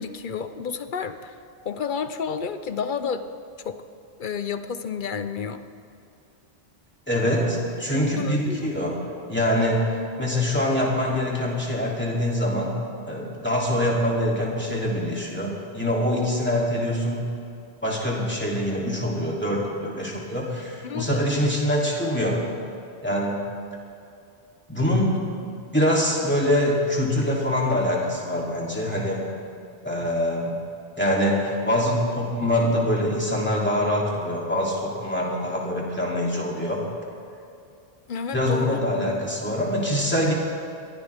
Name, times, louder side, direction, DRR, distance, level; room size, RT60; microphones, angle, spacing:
voice 1, 0.0-1.4 1.6-3.2 3.6-3.8 4.2-5.6 7.9-8.7 20.8-21.4 38.1-39.3, left 6 dB, 55° left, 10 dB, 0.9 m, -31 dB
voice 2, 7.1-9.0 9.3-9.9 10.2-12.7 13.1-17.2 17.8-22.4 23.0-23.4 24.7-25.2 25.4-29.2 29.8-30.5 31.0-36.8 38.3-40.3, left 1 dB, 10° left, -4 dB, 3.0 m, -24 dB
22.5 x 16.0 x 3.6 m, 2.5 s
omnidirectional pair, 1.1 m